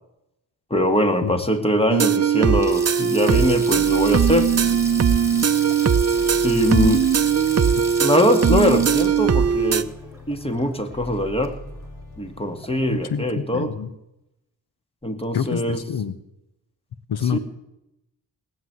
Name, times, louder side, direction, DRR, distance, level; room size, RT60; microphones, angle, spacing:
voice 1, 0.7-4.5 6.4-7.0 8.0-9.9 10.3-11.6 12.2-13.7 15.0-15.8 17.3-17.4, left 1 dB, 15° left, 7 dB, 2.1 m, -22 dB
sound 1, 1.5-1.7 3.7-5.8 6.1-13.2, left 1 dB, 55° left, 4.8 m, -39 dB
sound 2, 1.9-9.8, right 7 dB, 40° right, 0.8 m, -19 dB
Sink (filling or washing), 2.5-10.9 11.2-11.5 12.6-12.9, right 1 dB, 10° right, 3.2 m, -36 dB
voice 2, 12.9-13.9 15.3-16.2 17.1-17.4, left 8 dB, 80° left, 13 dB, 1.0 m, -26 dB
18.5 x 8.0 x 9.6 m, 0.86 s
cardioid pair, 65°, 38 cm